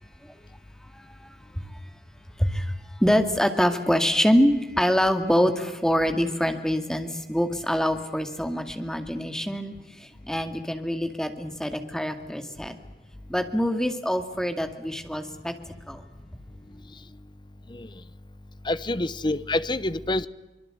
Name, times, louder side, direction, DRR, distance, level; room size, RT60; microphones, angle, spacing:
voice 1, 0.8-1.8 2.4-12.8 13.3-16.0, equal, 5° left, 2.2 m, -25 dB
voice 2, 18.6-20.3, left 2 dB, 25° left, 0.9 m, -27 dB
24.5 x 22.5 x 7.9 m
head